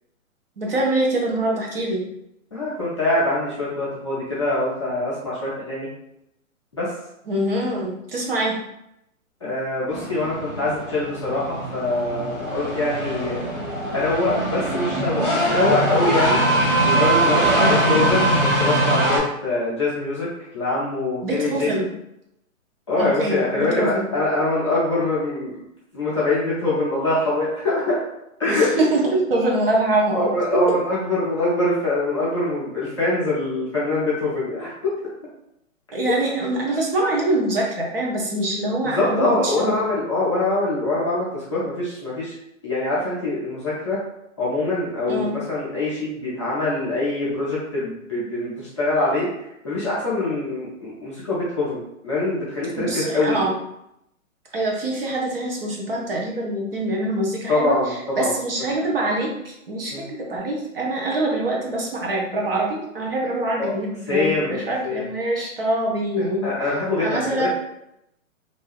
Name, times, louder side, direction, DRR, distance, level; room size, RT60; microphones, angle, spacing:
voice 1, 0.6-2.0 7.3-8.6 17.6-18.1 21.2-21.9 23.0-24.1 28.5-30.3 35.9-39.8 45.1-45.3 52.8-53.5 54.5-67.5, right 1 dB, 45° right, -1 dB, 0.7 m, -24 dB
voice 2, 2.5-5.9 6.7-6.9 9.4-13.4 13.9-16.4 16.8-20.3 20.5-21.7 22.9-25.6 25.9-28.0 28.4-28.6 30.1-34.7 38.9-42.3 42.6-44.0 44.4-49.3 49.6-53.4 57.5-58.3 59.9-60.0 63.6-63.7 64.1-65.0 66.4-67.5, left 2 dB, 20° left, -9 dB, 0.5 m, -24 dB
sound 1, 9.9-19.2, right 1 dB, ahead, 0.8 m, -22 dB
2.6 x 2.3 x 3.3 m, 0.82 s
hypercardioid pair, 165°, 42 cm